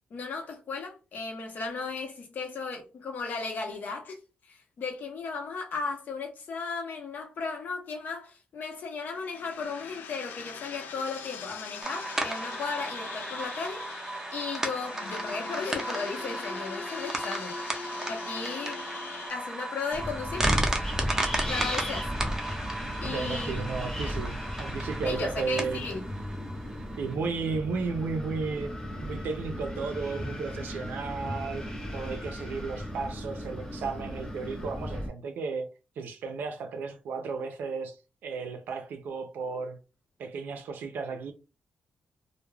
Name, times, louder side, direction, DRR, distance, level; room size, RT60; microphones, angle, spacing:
voice 1, 0.1-4.2 4.5-13.9 14.3-17.6 18.1-18.8 19.3-20.5 21.5-22.1 23.0-23.8 25.0-26.0, left 4 dB, 65° left, 0.7 m, -35 dB
sound 1, 9.0-19.3, left 6 dB, 85° left, 0.3 m, -42 dB
sound 2, 11.8-27.2, right 1 dB, 15° right, 0.5 m, -35 dB
Wind, 19.9-35.1, equal, 15° left, 0.7 m, -35 dB
voice 2, 23.0-25.9 27.0-28.7 29.0-31.7 31.9-35.7 36.0-38.0 38.2-39.8 40.2-41.3, right 4 dB, 85° right, 0.4 m, -34 dB
2.2 x 2.0 x 3.2 m
wide cardioid pair, 125°, 3 cm